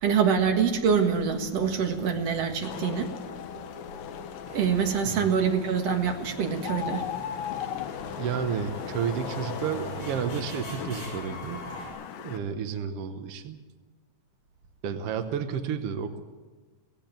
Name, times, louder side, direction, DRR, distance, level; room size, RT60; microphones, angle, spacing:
voice 1, 0.0-3.1 4.5-7.1, right 6 dB, 50° right, 4 dB, 2.5 m, -25 dB
Wind / Rain, 0.9-12.4, left 8 dB, 70° left, 2.7 m, -41 dB
sound 1, 3.2-8.8, left 11 dB, 85° left, 2.9 m, -39 dB
sound 2, 4.4-11.9, right 1 dB, 30° left, 7.7 m, -43 dB
voice 2, 8.2-11.6 12.2-13.6 14.8-16.2, right 7 dB, 80° right, 9 dB, 1.3 m, -31 dB
18.0 x 16.5 x 8.8 m, 1.3 s
omnidirectional pair, 4.2 m